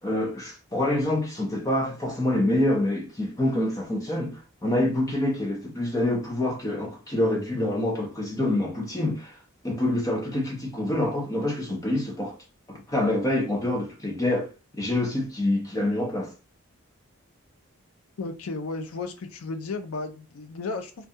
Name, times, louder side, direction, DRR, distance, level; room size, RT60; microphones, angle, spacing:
voice 1, 0.0-9.4 9.6-12.4 12.7-16.3, left 1 dB, 15° left, 0.4 m, -26 dB
voice 2, 18.2-21.1, left 3 dB, 80° left, 0.5 m, -34 dB
2.3 x 2.2 x 2.7 m
head